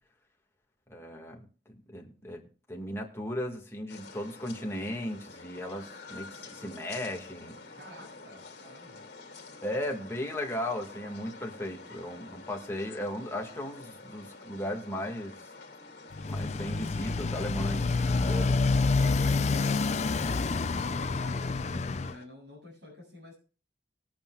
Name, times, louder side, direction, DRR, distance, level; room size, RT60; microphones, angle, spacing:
voice 1, 0.9-7.6 9.6-15.4 16.3-18.6, left 1 dB, 15° left, 1 dB, 1.9 m, -36 dB
sound 1, 3.9-22.3, left 3 dB, 60° left, 2.5 m, -49 dB
voice 2, 7.8-9.0 19.2-23.4, left 1 dB, 75° right, -5 dB, 7.3 m, -48 dB
Motorcycle, 16.1-22.1, left 3 dB, 40° left, 0.5 m, -28 dB
21.0 x 8.7 x 2.4 m, 0.37 s
head